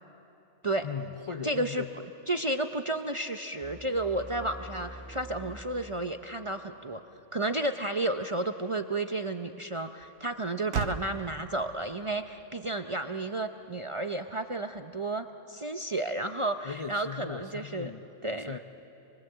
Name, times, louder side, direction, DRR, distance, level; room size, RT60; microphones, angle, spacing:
voice 1, 0.8-1.9 16.6-18.1 18.4-18.6, left 6 dB, 40° left, 7 dB, 0.4 m, -38 dB
voice 2, 1.4-1.8 2.3-7.0 7.3-17.9 18.2-18.5, right 2 dB, 30° right, 6 dB, 0.6 m, -32 dB
sound 1, 3.6-6.9, right 1 dB, 10° right, 1.3 m, -46 dB
Motor vehicle (road), 6.6-15.3, right 7 dB, 90° right, 1.3 m, -43 dB
28.0 x 22.0 x 8.0 m, 2.8 s
omnidirectional pair, 1.4 m